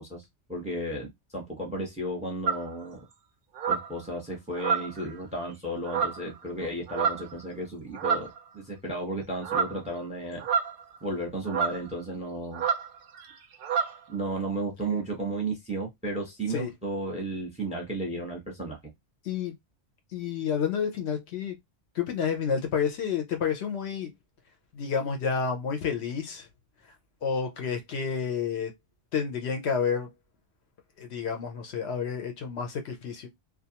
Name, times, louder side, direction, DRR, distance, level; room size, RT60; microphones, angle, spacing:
voice 1, 0.0-3.0 3.7-10.4 11.0-12.6 14.1-18.8, right 1 dB, 5° right, 0.7 m, -34 dB
sound 1, 2.5-2.7 3.6-3.9 4.5-5.1 5.8-6.3 6.9-7.3 7.9-8.4 9.4-9.8 10.4-11.0 11.5-11.8 12.5-12.9 13.1-13.3 13.6-14.0, right 7 dB, 60° right, 0.6 m, -28 dB
voice 2, 20.1-21.5 21.9-24.1 24.7-26.5 27.2-28.7 29.1-30.1 31.0-33.3, left 6 dB, 70° left, 0.8 m, -30 dB
2.3 x 2.3 x 2.8 m
omnidirectional pair, 1.2 m